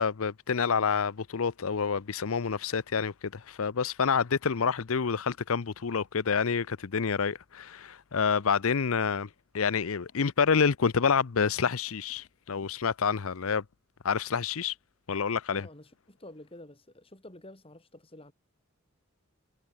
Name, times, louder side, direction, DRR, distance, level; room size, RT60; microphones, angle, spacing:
voice 1, 0.0-9.3 9.5-13.6 14.0-14.7 15.1-15.7, left 6 dB, 70° left, 0.6 m, -28 dB
voice 2, 15.5-18.3, left 1 dB, 25° left, 2.8 m, -49 dB
head